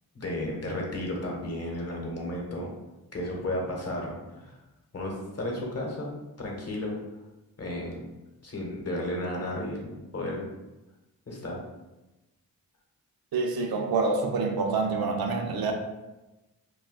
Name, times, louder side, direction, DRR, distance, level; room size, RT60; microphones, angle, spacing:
voice 1, 0.1-2.7 3.1-4.6 4.9-7.2 7.6-8.0 8.4-10.5 11.3-11.6, left 1 dB, 40° left, -1 dB, 0.9 m, -33 dB
voice 2, 13.3-15.7, right 4 dB, 65° right, 3 dB, 0.5 m, -27 dB
2.3 x 2.2 x 3.6 m, 1.0 s
cardioid pair, 60°, 38 cm